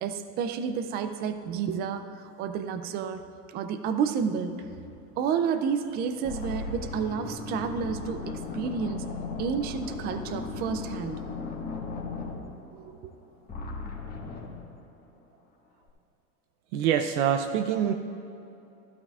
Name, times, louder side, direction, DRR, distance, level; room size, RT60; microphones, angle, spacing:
voice 1, 0.0-3.2 3.5-4.5 5.2-9.0 9.4-11.2 12.7-13.1, right 7 dB, 25° right, 9 dB, 0.3 m, -30 dB
sound 1, 5.6-5.8 6.2-13.2 13.5-14.6, left 4 dB, 20° left, 1.5 m, -36 dB
voice 2, 16.7-17.9, right 9 dB, 70° right, 5 dB, 0.7 m, -25 dB
14.0 x 12.5 x 2.4 m, 2.9 s
supercardioid pair, 125°, 45 cm